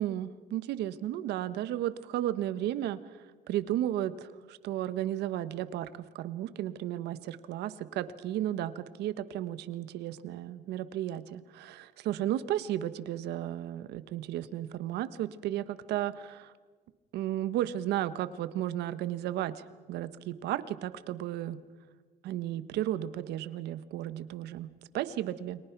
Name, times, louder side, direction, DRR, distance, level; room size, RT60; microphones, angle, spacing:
voice 1, 0.0-3.0 3.5-16.5 17.1-19.6 19.9-21.6 22.2-25.6, right 12 dB, 80° right, 14 dB, 1.3 m, -34 dB
30.0 x 23.0 x 6.0 m, 1.4 s
cardioid pair, 110°, 17 cm